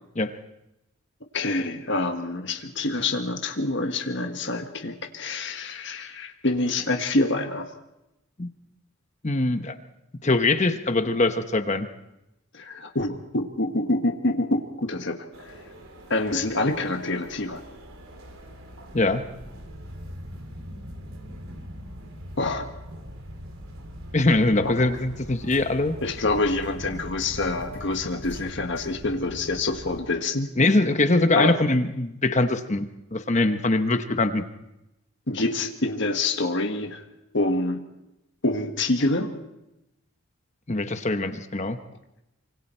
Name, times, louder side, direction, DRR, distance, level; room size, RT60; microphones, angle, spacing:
voice 1, 1.3-7.7 12.5-15.5 16.1-17.6 22.4-22.7 24.6-24.8 26.0-30.5 31.3-31.6 35.3-37.0 37.3-37.8 38.4-39.4, left 2 dB, 55° left, 4 dB, 1.6 m, -26 dB
voice 2, 9.2-9.8 10.2-11.9 18.9-19.2 24.1-25.9 30.6-32.9 33.1-34.4 40.7-41.8, left 2 dB, 30° left, 9 dB, 1.0 m, -22 dB
sound 1, 15.3-30.0, equal, 70° right, 3.3 m, -41 dB
25.5 x 24.5 x 4.5 m, 0.90 s
head